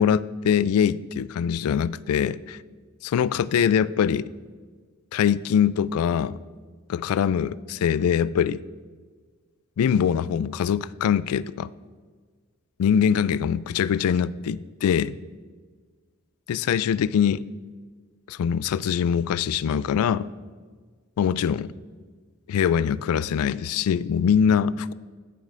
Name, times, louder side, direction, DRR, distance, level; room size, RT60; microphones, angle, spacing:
voice 1, 0.0-2.6 3.0-4.3 5.1-6.4 6.9-8.6 9.8-11.7 12.8-15.1 16.5-17.4 18.3-20.3 21.2-21.7 22.5-24.9, left 8 dB, 85° left, 0.3 m, -23 dB
14.5 x 7.2 x 2.5 m
head